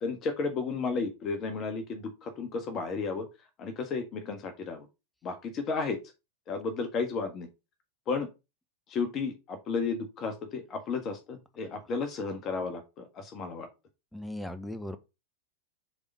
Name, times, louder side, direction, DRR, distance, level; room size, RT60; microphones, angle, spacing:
voice 1, 0.0-3.3 3.6-4.9 5.2-6.0 6.5-7.5 8.1-8.3 8.9-13.7, left 4 dB, 35° left, 1.6 m, -33 dB
voice 2, 14.1-15.0, left 1 dB, 5° left, 1.1 m, -37 dB
7.1 x 4.0 x 4.2 m
figure-of-eight pair, 90°, 0 cm